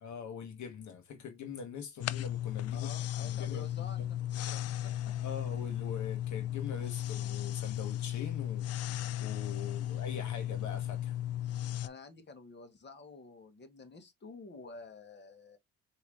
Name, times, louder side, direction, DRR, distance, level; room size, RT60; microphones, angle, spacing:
voice 1, 0.0-2.9 3.2-4.1 5.2-8.7 9.2-11.2, left 6 dB, 70° left, 1.1 m, -43 dB
sound 1, 2.0-11.9, left 12 dB, 55° left, 0.4 m, -35 dB
voice 2, 2.7-5.1 9.8-10.0 11.8-15.6, left 4 dB, 35° left, 1.4 m, -50 dB
4.6 x 2.9 x 3.5 m
cardioid pair, 90°, 30 cm